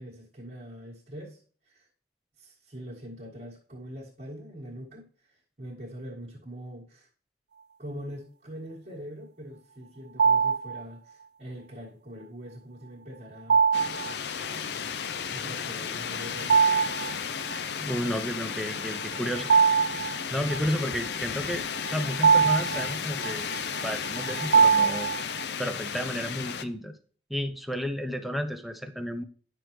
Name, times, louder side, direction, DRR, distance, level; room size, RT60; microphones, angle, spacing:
voice 1, 0.0-1.9 2.4-7.1 7.8-13.6 15.2-16.6, equal, 40° right, -7 dB, 1.6 m, -43 dB
sound 1, 10.2-10.8 13.5-14.1 16.4-17.1 17.5-17.6 19.0-20.6 21.5-25.4, right 6 dB, 65° right, 0.3 m, -23 dB
sound 2, 13.7-26.6, left 7 dB, 70° left, 0.5 m, -34 dB
voice 2, 17.8-19.5 20.3-23.5 23.8-25.1 25.6-27.0 27.3-29.2, equal, ahead, 6 dB, 0.6 m, -32 dB
9.8 x 6.1 x 3.2 m, 0.42 s
head